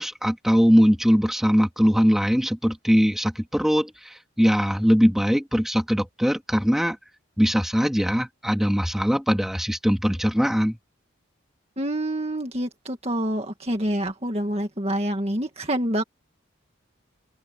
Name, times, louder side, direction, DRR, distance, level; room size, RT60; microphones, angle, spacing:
voice 1, 0.0-7.0 7.4-10.8, equal, ahead, 2.8 m, -21 dB
voice 2, 11.8-16.0, right 1 dB, 30° right, 2.0 m, -27 dB
head